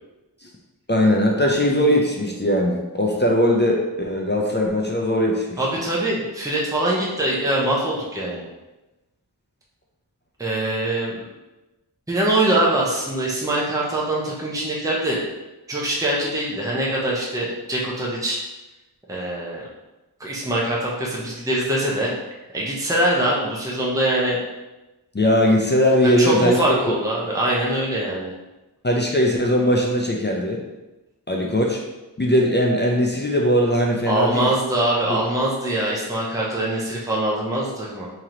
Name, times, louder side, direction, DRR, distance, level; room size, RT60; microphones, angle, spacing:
voice 1, 0.9-5.6 25.1-26.9 28.8-30.6 31.3-31.8 32.2-34.5 35.1-35.2, equal, 25° left, -1 dB, 0.5 m, -20 dB
voice 2, 5.6-8.5 10.4-11.2 12.1-15.2 15.7-18.4 19.1-19.6 20.2-22.1 22.5-24.4 26.2-28.3 34.1-38.1, right 1 dB, 10° right, -5 dB, 0.8 m, -23 dB
3.0 x 2.9 x 3.8 m, 1.1 s
wide cardioid pair, 40°, 41 cm